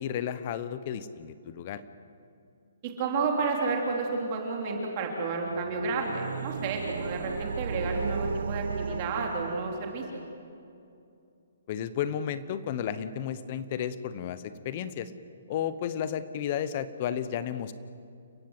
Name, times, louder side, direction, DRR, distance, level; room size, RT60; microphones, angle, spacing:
voice 1, 0.0-1.8 11.7-15.1 15.5-17.7, left 9 dB, 30° left, 14 dB, 0.9 m, -33 dB
voice 2, 2.8-10.2, right 4 dB, 25° right, 1 dB, 2.8 m, -31 dB
sound 1, 5.4-10.1, right 5 dB, 70° right, 0.8 m, -35 dB
29.5 x 16.0 x 8.0 m, 2.5 s
hypercardioid pair, 175°, 0 cm